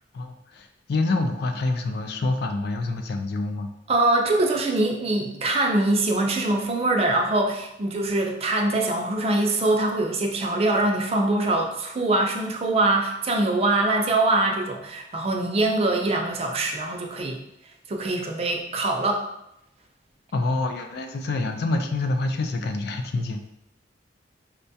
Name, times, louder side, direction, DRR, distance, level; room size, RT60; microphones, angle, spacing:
voice 1, 0.1-3.7 20.3-23.4, left 2 dB, 60° left, 6 dB, 0.3 m, -27 dB
voice 2, 3.9-17.4 17.9-19.2, right 2 dB, 35° right, 2 dB, 0.4 m, -23 dB
4.5 x 2.2 x 2.7 m, 0.84 s
head